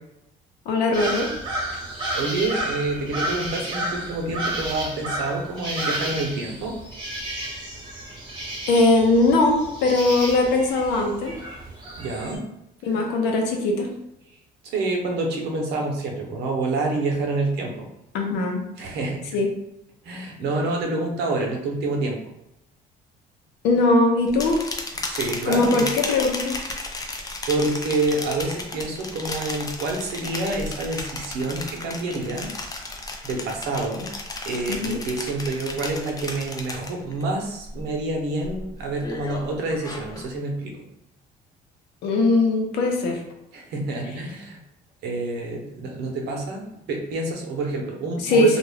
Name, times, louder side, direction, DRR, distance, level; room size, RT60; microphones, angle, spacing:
voice 1, 0.7-1.3 8.7-11.4 12.8-13.9 18.1-18.6 19.3-19.5 23.6-24.6 25.5-26.6 34.7-35.0 42.0-43.2 48.2-48.6, left 2 dB, 85° left, 2 dB, 0.7 m, -20 dB
sound 1, 0.9-12.4, right 1 dB, 25° right, 1.0 m, -31 dB
voice 2, 2.1-6.8 12.0-12.5 14.6-17.9 18.8-19.4 20.0-22.2 25.1-25.8 27.0-32.5 33.2-34.1 34.4-40.8 43.5-44.6 45.0-48.6, right 2 dB, 80° right, 1 dB, 0.7 m, -28 dB
sound 2, 24.3-37.2 37.6-38.0 38.4-40.3, left 2 dB, 20° left, 0.4 m, -34 dB
2.4 x 2.2 x 3.3 m, 0.84 s
cardioid pair, 110°, 17 cm